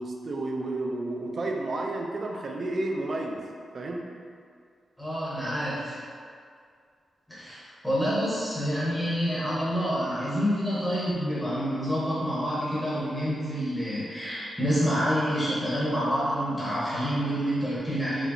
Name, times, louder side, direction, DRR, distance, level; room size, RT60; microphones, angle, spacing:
voice 1, 0.0-3.4 3.7-4.0, right 2 dB, 40° right, 1 dB, 0.4 m, -31 dB
voice 2, 5.0-6.0 7.3-7.6 7.8-18.3, equal, ahead, -10 dB, 0.8 m, -27 dB
4.6 x 3.0 x 2.6 m, 2.2 s
wide cardioid pair, 180°, 0 cm